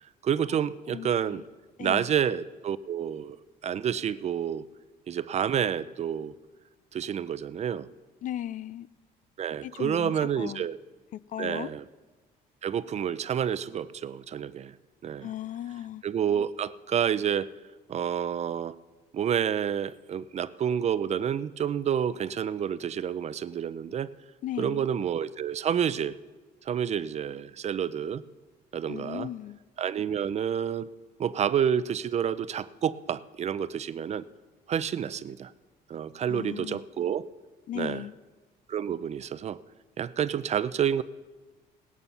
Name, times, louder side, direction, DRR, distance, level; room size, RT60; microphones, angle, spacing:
voice 1, 0.2-1.4 1.8-3.4 3.6-4.6 5.1-6.3 6.9-7.9 9.4-10.8 11.4-11.8 12.6-14.7 15.0-15.3 16.0-17.5 17.9-18.7 19.1-24.1 24.6-26.2 26.7-28.2 28.7-29.3 29.8-30.9 31.2-34.2 34.7-35.5 35.9-37.3 37.8-38.0 38.7-39.6 40.0-41.0, right 8 dB, 40° right, 16 dB, 0.5 m, -29 dB
voice 2, 0.9-1.5 1.8-2.1 8.2-8.9 9.6-10.7 11.1-11.7 15.2-16.0 24.4-24.9 28.9-29.6 36.2-36.8 37.7-38.1, left 12 dB, 50° left, 19 dB, 0.4 m, -37 dB
18.0 x 9.3 x 5.6 m, 1.3 s
cardioid pair, 110°, 17 cm